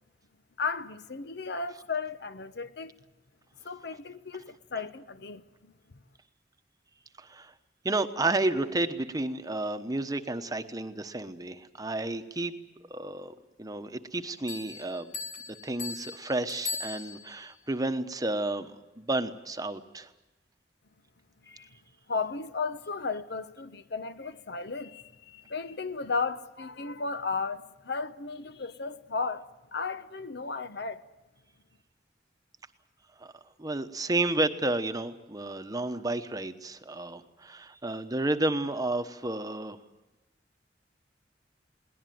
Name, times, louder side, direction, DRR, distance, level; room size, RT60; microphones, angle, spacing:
voice 1, 0.6-2.9 3.6-5.7 21.4-21.7 22.1-31.0, left 4 dB, 65° left, 1.0 m, -35 dB
voice 2, 7.2-7.5 7.8-12.5 12.9-15.1 15.5-20.1 33.2-33.3 33.6-39.8, right 2 dB, 20° right, 1.0 m, -31 dB
sound 1, 14.5-17.5, left 5 dB, 45° left, 1.9 m, -39 dB
21.5 x 18.5 x 9.3 m
head